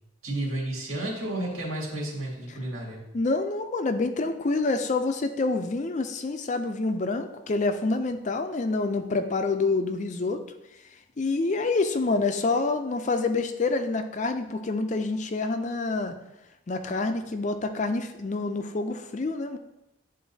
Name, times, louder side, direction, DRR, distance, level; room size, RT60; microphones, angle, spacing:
voice 1, 0.2-3.1, right 1 dB, 90° right, -3 dB, 2.2 m, -32 dB
voice 2, 3.1-10.4 11.2-16.1 16.7-19.6, left 3 dB, 35° left, 8 dB, 0.4 m, -27 dB
10.5 x 3.8 x 2.7 m, 0.90 s
head